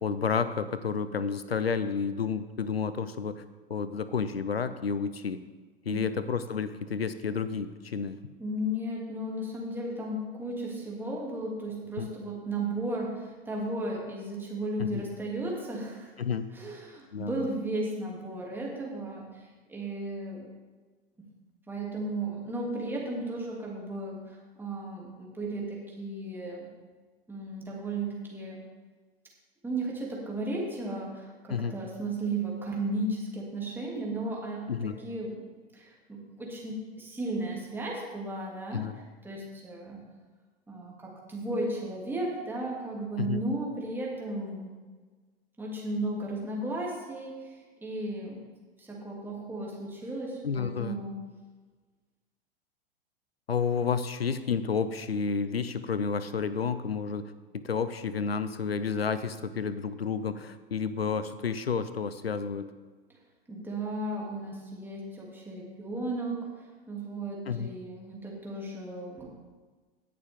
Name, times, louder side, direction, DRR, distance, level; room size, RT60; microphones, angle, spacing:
voice 1, 0.0-3.4 3.7-5.4 5.9-8.2 12.0-12.1 14.8-15.0 16.2-16.5 17.1-17.4 31.5-31.7 34.7-35.0 38.7-39.0 43.2-43.4 50.4-51.0 53.5-62.7 67.5-67.7, left 6 dB, 85° left, 13 dB, 0.6 m, -30 dB
voice 2, 8.4-16.1 16.5-20.5 21.7-26.7 27.3-28.6 29.6-35.4 35.7-38.9 39.2-40.0 40.7-44.7 45.6-48.4 48.8-51.2 63.5-66.5 66.9-69.3, right 1 dB, 5° right, -3 dB, 2.6 m, -35 dB
18.0 x 6.8 x 3.6 m, 1.4 s
figure-of-eight pair, 95°, 30 cm